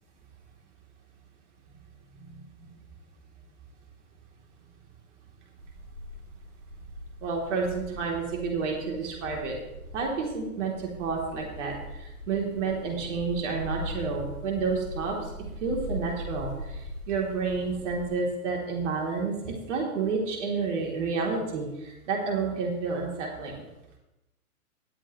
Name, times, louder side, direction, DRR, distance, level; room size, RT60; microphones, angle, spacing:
sound 1, 5.6-18.1, equal, 80° right, 3.3 m, -41 dB
voice 1, 7.2-9.5 9.9-11.7 12.0-16.8 17.1-23.6, right 4 dB, 50° right, 0 dB, 3.5 m, -30 dB
19.0 x 8.5 x 3.2 m, 0.95 s
hypercardioid pair, 125°, 44 cm